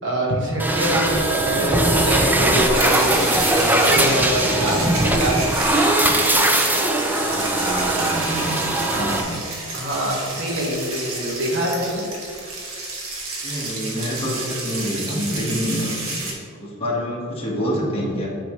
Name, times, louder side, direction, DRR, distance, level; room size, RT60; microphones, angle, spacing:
voice 1, 0.0-5.4 8.9-9.2 9.7-12.0, equal, 60° right, -2 dB, 1.5 m, -25 dB
sound 1, 0.6-9.2, right 1 dB, 10° right, 0.4 m, -20 dB
sound 2, 2.7-16.3, right 2 dB, 85° right, 1.3 m, -30 dB
voice 2, 7.1-9.4 13.4-15.9 16.2-18.3, equal, 30° left, -6 dB, 1.5 m, -27 dB
9.6 x 4.3 x 3.2 m, 2.4 s
head